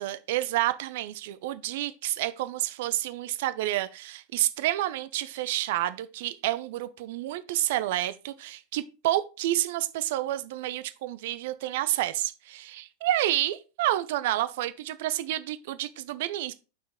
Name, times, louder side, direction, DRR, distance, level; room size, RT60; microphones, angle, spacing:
voice 1, 0.0-16.5, right 14 dB, 50° right, 0.6 m, -29 dB
7.4 x 5.9 x 3.6 m
figure-of-eight pair, 90°, 0 cm